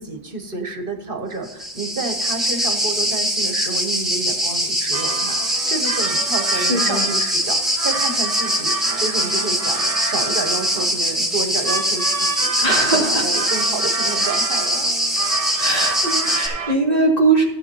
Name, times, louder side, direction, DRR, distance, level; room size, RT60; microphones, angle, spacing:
voice 1, 0.0-14.9, right 3 dB, 60° right, 5 dB, 1.2 m, -30 dB
sound 1, 1.4-16.5, equal, ahead, 2.2 m, -22 dB
sound 2, 4.9-16.8, right 5 dB, 45° right, 0.5 m, -30 dB
voice 2, 6.5-7.1 12.6-13.5 15.6-17.5, right 2 dB, 40° left, -3 dB, 2.8 m, -20 dB
15.5 x 7.9 x 3.0 m, 1.0 s
omnidirectional pair, 1.1 m